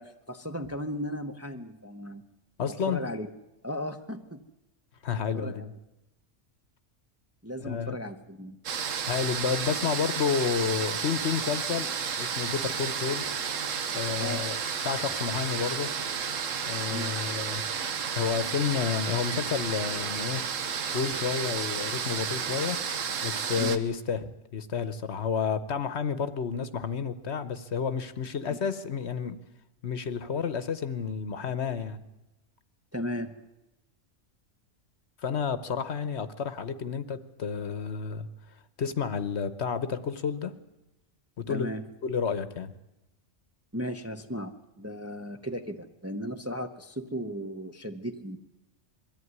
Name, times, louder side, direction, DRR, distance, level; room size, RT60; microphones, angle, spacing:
voice 1, 0.0-2.3 2.9-3.3 3.6-4.4 5.1-5.7 7.4-8.6 14.1-14.4 16.9-17.2 23.6-23.8 28.5-28.6 32.9-33.3 41.5-41.9 43.7-48.4, equal, 15° right, 6 dB, 0.8 m, -36 dB
voice 2, 2.6-3.0 5.0-5.7 7.6-8.0 9.1-13.3 13.9-14.6 14.8-15.9 16.7-17.6 18.1-20.5 20.9-22.8 23.2-29.4 29.8-32.0 35.2-38.3 38.8-40.5 41.4-41.7 42.0-42.7, left 6 dB, 60° left, 13 dB, 1.2 m, -30 dB
sound 1, 8.6-23.8, right 7 dB, 75° right, 1.4 m, -32 dB
22.0 x 14.0 x 9.5 m, 0.96 s
omnidirectional pair, 1.4 m